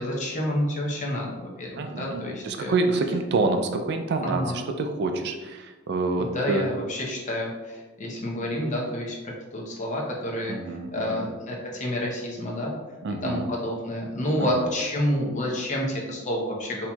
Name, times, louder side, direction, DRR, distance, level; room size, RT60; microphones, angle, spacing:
voice 1, 0.0-2.7 4.2-4.6 6.2-12.7 13.2-16.9, left 1 dB, 40° left, -2 dB, 0.7 m, -29 dB
voice 2, 1.8-4.4 4.8-6.7 10.5-11.3 13.0-13.5 14.4-14.7, right 3 dB, 55° right, 6 dB, 0.3 m, -27 dB
4.3 x 2.8 x 2.2 m, 1.2 s
head